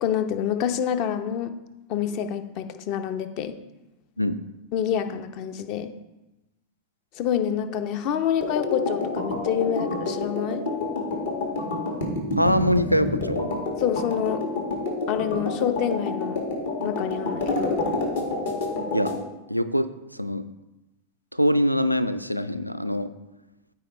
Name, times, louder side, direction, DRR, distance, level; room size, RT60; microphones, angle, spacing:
voice 1, 0.0-1.5 1.9-3.6 4.7-5.9 7.2-10.6 13.8-14.4 15.1-16.4 16.8-17.8, left 9 dB, 40° left, 10 dB, 0.7 m, -27 dB
sound 1, 8.4-19.2, left 2 dB, 60° left, 1.9 m, -28 dB
voice 2, 12.4-13.5 18.9-19.1 19.5-20.4 21.3-23.1, equal, 90° right, 12 dB, 0.4 m, -23 dB
14.0 x 4.7 x 3.2 m, 0.99 s
figure-of-eight pair, 90°, 0 cm